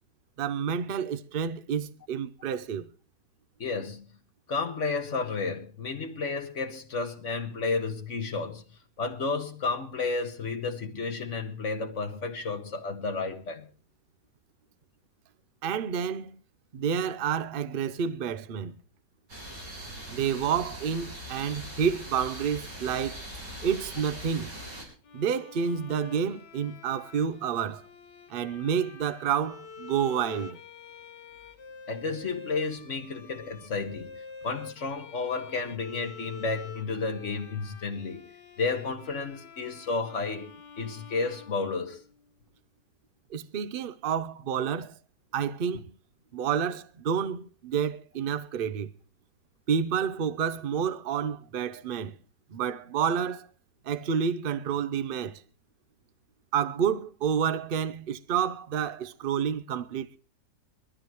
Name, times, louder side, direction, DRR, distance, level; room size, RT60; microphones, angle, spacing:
voice 1, 0.4-2.9 15.6-16.4 16.7-18.8 20.1-23.2 23.6-24.5 25.1-27.8 28.3-30.6 43.3-44.9 45.3-45.9 46.3-48.9 49.7-52.1 52.5-53.5 53.8-55.4 56.5-60.2, right 7 dB, 50° right, 0.7 m, -29 dB
voice 2, 3.6-4.1 4.5-8.6 9.0-13.7 31.9-38.2 38.6-40.5 40.8-42.0, left 4 dB, 45° left, 1.9 m, -32 dB
sound 1, 19.3-24.8, equal, 85° right, 5.4 m, -41 dB
Bowed string instrument, 25.0-42.3, left 5 dB, 80° left, 1.7 m, -47 dB
22.0 x 13.5 x 3.1 m
omnidirectional pair, 1.8 m